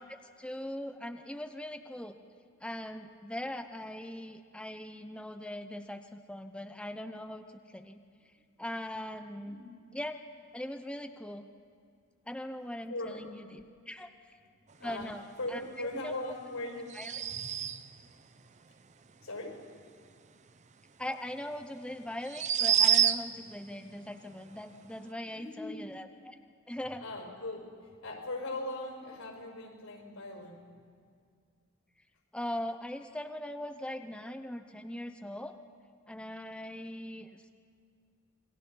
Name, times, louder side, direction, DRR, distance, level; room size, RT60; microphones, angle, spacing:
voice 1, 0.0-2.2 2.6-8.0 8.6-9.6 9.9-10.2 10.5-11.5 12.3-14.1 14.8-15.2 15.5-15.6 15.9-16.1 16.9-17.1 21.0-26.3 26.7-27.0 32.3-35.5 36.1-37.5, left 1 dB, 5° left, 6 dB, 0.7 m, -40 dB
voice 2, 12.9-13.3 13.8-14.1 14.6-15.1 15.4-16.9 17.3-17.7 19.1-19.6 25.3-25.8 27.0-30.6, left 2 dB, 90° left, 2 dB, 5.5 m, -40 dB
sound 1, 16.9-18.0 21.1-21.2 22.2-23.5, right 9 dB, 35° right, 0.6 m, -27 dB
28.0 x 22.0 x 5.6 m, 2.2 s
head